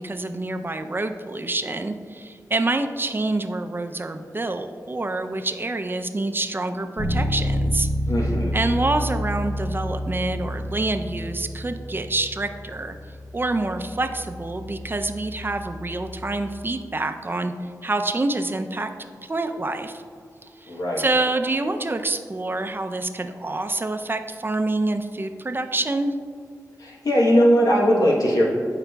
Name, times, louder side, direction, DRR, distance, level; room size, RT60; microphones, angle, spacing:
voice 1, 0.0-7.9 8.5-13.0 13.3-17.5 17.8-18.9 19.2-20.0 20.6-26.1, right 2 dB, 35° right, 7 dB, 0.5 m, -27 dB
Bass guitar, 7.0-16.8, equal, 45° left, 1.2 m, -29 dB
voice 2, 8.1-8.6 20.7-21.1 26.8-28.4, equal, 65° left, -3 dB, 1.1 m, -19 dB
12.0 x 4.8 x 2.3 m, 2.1 s
cardioid pair, 50°, 7 cm